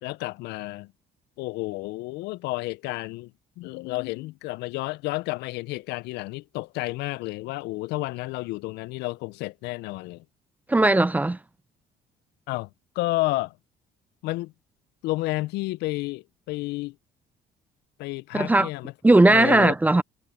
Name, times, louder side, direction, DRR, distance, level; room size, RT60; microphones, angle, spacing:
voice 1, 0.0-0.9 1.4-3.3 3.6-10.2 12.5-12.7 13.0-13.6 14.2-14.5 15.0-17.0 18.0-18.9 19.3-19.7, left 20 dB, 85° left, 0.4 m, -31 dB
voice 2, 10.7-11.4 18.3-18.7 19.0-20.0, right 2 dB, 10° right, 0.4 m, -18 dB
cardioid pair, 110°, 17 cm